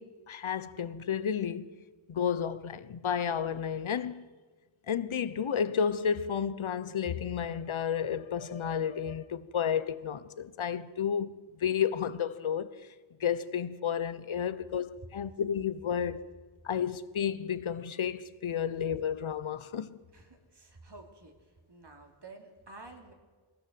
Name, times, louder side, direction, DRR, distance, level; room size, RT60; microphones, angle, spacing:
voice 1, 0.0-1.7 2.1-4.3 4.9-11.3 11.6-12.7 13.2-16.2 16.6-20.0, left 8 dB, 75° left, 1.0 m, -32 dB
voice 2, 20.1-23.1, right 3 dB, 55° right, 3.2 m, -51 dB
22.5 x 16.5 x 7.8 m
wide cardioid pair, 95°, 48 cm